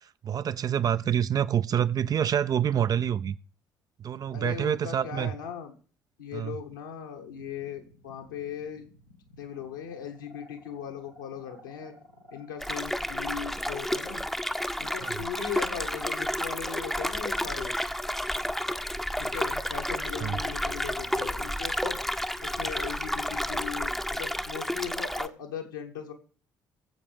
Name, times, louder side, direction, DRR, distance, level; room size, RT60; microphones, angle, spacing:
voice 1, 0.2-3.4 4.0-5.3 6.3-6.6 15.0-15.2 20.2-20.4, right 9 dB, 35° right, 0.5 m, -27 dB
voice 2, 4.3-5.7 6.2-8.8 9.4-11.9 12.3-14.2 14.8-17.7 19.1-22.0 22.4-26.1, left 8 dB, 75° left, 1.6 m, -38 dB
sound 1, 7.2-13.8, left 1 dB, 85° right, 1.9 m, -54 dB
sound 2, 12.6-25.3, equal, ahead, 0.7 m, -31 dB
20.0 x 7.6 x 3.5 m
figure-of-eight pair, 50°, 10 cm